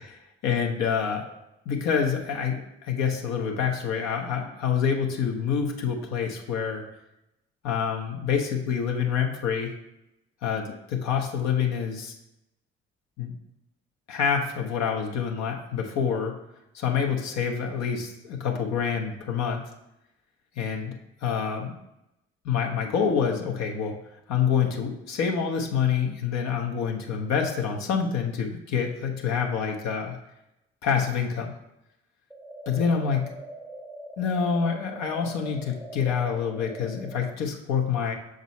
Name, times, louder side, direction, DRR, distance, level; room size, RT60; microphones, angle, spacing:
voice 1, 0.0-1.4 1.6-6.8 7.6-9.7 10.4-12.1 13.2-13.3 14.1-16.3 16.7-19.6 20.6-21.7 22.4-24.0 24.3-30.2 30.8-31.5 32.7-33.3 34.2-38.2, left 7 dB, 60° left, 1 dB, 1.0 m, -27 dB
sound 1, 32.3-37.3, right 1 dB, 5° left, 0.8 m, -42 dB
6.2 x 3.9 x 4.1 m, 0.87 s
figure-of-eight pair, 45°, 31 cm